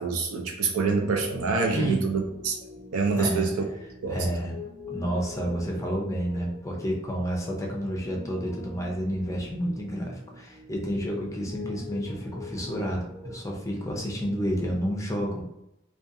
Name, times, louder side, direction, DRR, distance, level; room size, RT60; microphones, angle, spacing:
voice 1, 0.0-2.5 2.9-3.5 4.0-4.2, right 4 dB, 80° right, 3 dB, 0.5 m, -26 dB
Piano, 1.0-14.7, left 3 dB, 15° right, 0.9 m, -44 dB
voice 2, 1.7-2.1 3.1-3.5 4.1-4.6 4.9-15.4, equal, 15° left, -1 dB, 0.5 m, -30 dB
2.4 x 2.3 x 2.6 m, 0.85 s
head